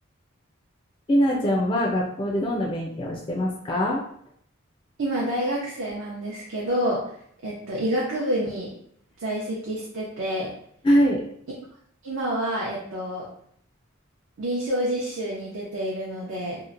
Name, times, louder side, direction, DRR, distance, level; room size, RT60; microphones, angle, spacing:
voice 1, 1.1-4.0 10.8-11.2, equal, 25° left, -3 dB, 0.3 m, -23 dB
voice 2, 5.0-7.2 7.4-8.7 9.2-10.5 12.0-13.3 14.4-16.6, right 1 dB, 80° right, -5 dB, 0.6 m, -28 dB
2.8 x 2.0 x 2.5 m, 0.65 s
head